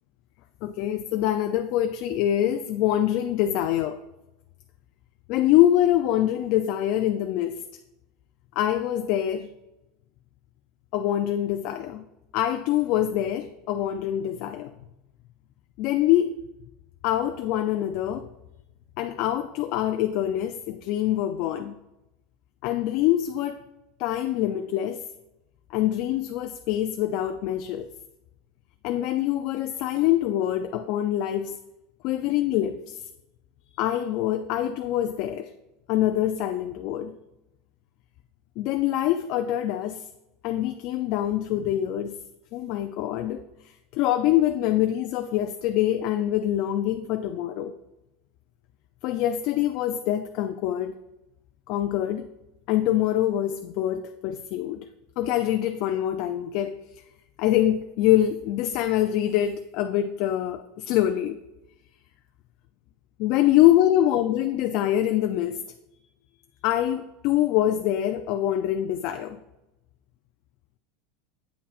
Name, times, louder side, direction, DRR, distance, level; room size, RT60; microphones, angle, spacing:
voice 1, 0.6-4.0 5.3-7.6 8.6-9.5 10.9-12.1 12.3-14.7 15.8-16.4 17.0-18.3 19.0-21.8 22.6-23.6 24.0-25.0 25.7-27.9 28.8-31.5 32.0-33.0 33.8-35.5 35.9-37.2 38.6-40.1 40.4-42.1 42.5-47.7 49.0-51.0 51.7-52.3 52.7-54.9 55.2-56.8 57.4-61.4 63.2-65.6 66.6-69.4, left 12 dB, 55° left, 7 dB, 0.4 m, -24 dB
8.2 x 5.8 x 2.4 m, 0.94 s
supercardioid pair, 140°, 0 cm